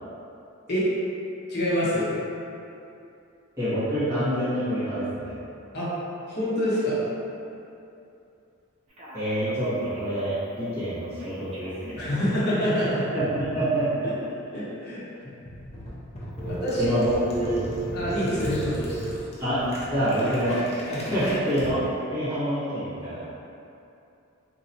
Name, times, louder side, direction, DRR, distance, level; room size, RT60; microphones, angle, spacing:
voice 1, 1.5-2.1 5.7-5.9 6.3-7.0 12.0-13.0 14.0-14.1 14.5-15.0 16.4-17.0 17.9-19.1 20.9-21.1, equal, 45° left, -9 dB, 0.8 m, -26 dB
voice 2, 3.6-5.3 9.1-12.0 13.1-14.1 16.8-17.6 19.4-20.6 20.9-21.8 22.1-23.2, equal, 15° right, -16 dB, 1.3 m, -26 dB
Telephone, 8.9-10.5 11.2-12.8 16.4-19.3, right 4 dB, 30° right, 0.5 m, -38 dB
sound 1, 15.4-21.8, equal, 30° left, 0.4 m, -37 dB
2.9 x 2.7 x 2.7 m, 2.7 s
head